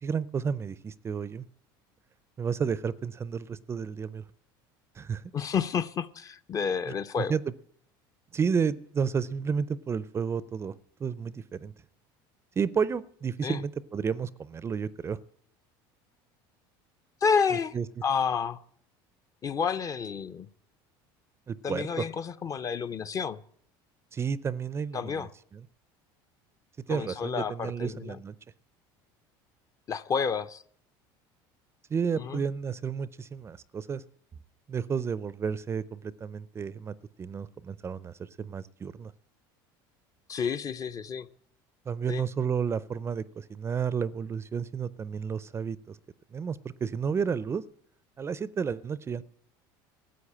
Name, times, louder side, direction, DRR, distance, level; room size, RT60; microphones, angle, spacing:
voice 1, 0.0-1.5 2.4-4.2 5.0-5.2 7.3-7.4 8.3-10.7 11.0-11.7 12.6-15.2 17.7-17.8 21.5-22.1 24.1-25.6 26.9-28.3 31.9-34.0 34.7-39.1 41.9-46.0 46.3-47.6 48.2-49.2, right 6 dB, 25° right, 19 dB, 0.4 m, -31 dB
voice 2, 5.3-7.3 13.4-13.6 17.2-17.8 18.0-18.6 19.4-20.5 21.6-23.4 24.9-25.3 26.9-28.2 29.9-30.6 32.2-32.4 40.3-41.3 42.1-42.2, left 6 dB, 30° left, 12 dB, 0.6 m, -30 dB
13.0 x 8.0 x 8.6 m, 0.62 s
supercardioid pair, 115°, 11 cm